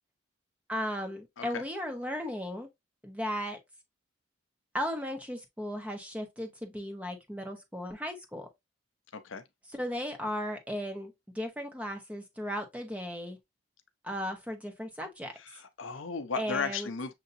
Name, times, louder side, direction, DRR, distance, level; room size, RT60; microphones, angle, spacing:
voice 1, 0.7-2.7 3.0-3.6 4.7-8.5 9.7-13.4 14.0-15.3 16.4-16.9, equal, 5° right, 1.0 m, -36 dB
voice 2, 9.1-9.4 15.4-17.1, left 5 dB, 75° left, 0.7 m, -35 dB
6.7 x 2.8 x 2.6 m
head